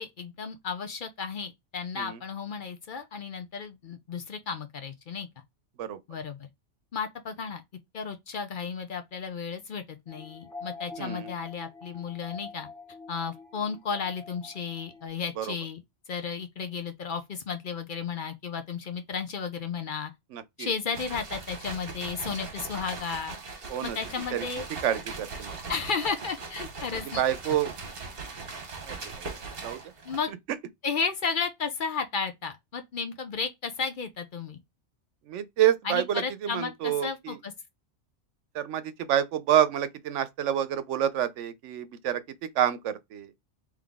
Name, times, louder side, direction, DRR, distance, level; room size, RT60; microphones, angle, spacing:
voice 1, 0.0-5.3 6.1-6.5 6.9-7.6 7.9-12.7 13.1-15.8 16.1-20.1 20.6-23.4 23.8-24.6 25.7-27.2 30.0-30.3 30.8-34.6 35.8-37.5, left 5 dB, 55° left, 0.7 m, -33 dB
sound 1, 10.1-15.1, left 4 dB, ahead, 0.8 m, -45 dB
voice 2, 11.0-11.3 15.4-15.5 20.3-20.7 23.7-24.0 24.3-24.5 24.8-25.6 26.9-27.7 28.8-29.3 29.6-29.8 35.3-37.4 38.5-43.3, right 10 dB, 90° right, 0.9 m, -28 dB
sound 2, 20.9-30.3, right 4 dB, 55° right, 1.2 m, -40 dB
3.8 x 3.1 x 3.5 m
omnidirectional pair, 1.2 m